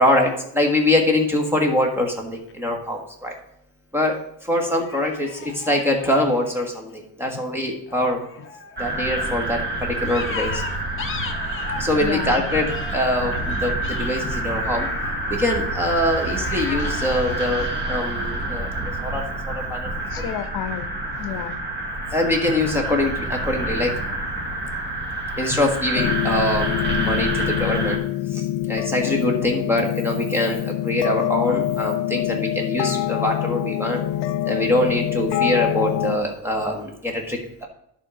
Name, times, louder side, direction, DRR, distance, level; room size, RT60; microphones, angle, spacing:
voice 1, 0.0-3.3 3.9-4.2 4.5-8.2 8.8-10.6 11.8-14.9 15.3-18.7 19.0-19.9 20.2-20.3 22.1-23.9 25.4-28.0 28.3-34.0 34.5-37.7, left 1 dB, 5° right, 1 dB, 1.3 m, -23 dB
sound 1, 2.3-2.5 4.7-7.0 7.9-9.3 10.1-11.9 12.3-15.3 16.3-18.5 20.0-20.5, left 5 dB, 30° left, 0.9 m, -37 dB
sound 2, 8.8-28.0, right 2 dB, 25° right, 1.4 m, -28 dB
voice 2, 12.0-12.4 20.1-20.9 21.1-21.6, left 10 dB, 55° left, 11 dB, 1.0 m, -30 dB
sound 3, 25.9-36.2, left 13 dB, 80° left, 0.6 m, -25 dB
11.0 x 3.6 x 6.2 m, 0.75 s
cardioid pair, 170°, 43 cm